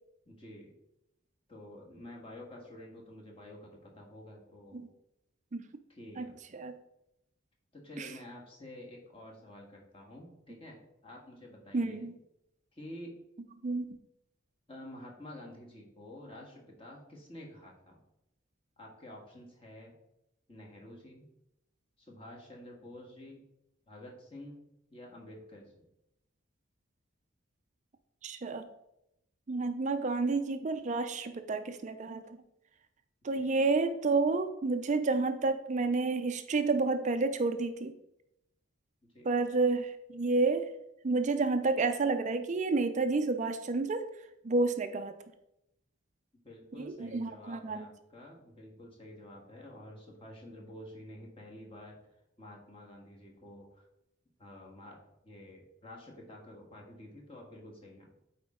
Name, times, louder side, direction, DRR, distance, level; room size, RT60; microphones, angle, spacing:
voice 1, 0.3-0.7 1.5-4.9 5.9-6.4 7.7-12.1 12.7-13.2 14.7-18.0 18.8-19.9 20.5-21.3 22.0-23.4 23.9-24.6 24.9-25.8 33.3-33.5 39.0-39.3 46.4-52.0 52.4-53.9 54.4-55.0 55.2-58.1, left 1 dB, 25° left, -1 dB, 1.6 m, -49 dB
voice 2, 6.2-6.7 8.0-8.1 11.7-12.1 13.6-13.9 28.2-28.6 29.5-32.4 33.2-37.9 39.2-40.7 41.0-44.1 44.4-45.1 46.8-47.9, right 3 dB, 35° right, 9 dB, 0.4 m, -30 dB
8.5 x 4.3 x 3.7 m, 0.84 s
head